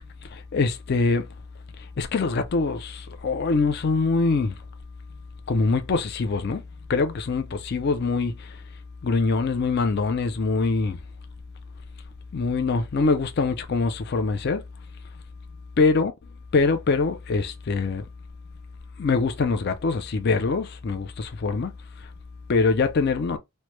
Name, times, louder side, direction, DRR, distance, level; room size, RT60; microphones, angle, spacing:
voice 1, 0.3-1.3 2.0-4.5 5.5-6.6 6.9-8.6 9.0-11.0 12.3-14.6 15.8-16.1 16.5-18.0 19.0-21.7 22.5-23.4, left 4 dB, 50° left, 0.4 m, -23 dB
3.0 x 2.2 x 3.0 m
head